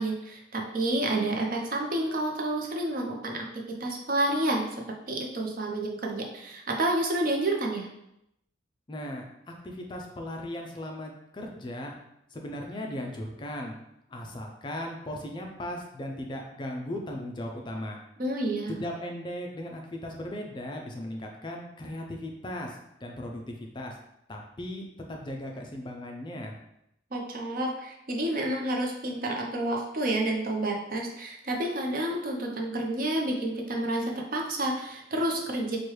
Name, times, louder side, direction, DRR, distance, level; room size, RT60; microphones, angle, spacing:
voice 1, 0.0-4.6 5.1-7.9 18.2-18.8 27.1-35.8, right 1 dB, 50° right, 1 dB, 0.6 m, -29 dB
voice 2, 8.9-11.9 12.3-13.7 14.1-18.0 18.7-24.0 24.3-26.5, left 1 dB, 25° left, 1 dB, 0.4 m, -37 dB
4.7 x 2.2 x 3.1 m, 0.80 s
head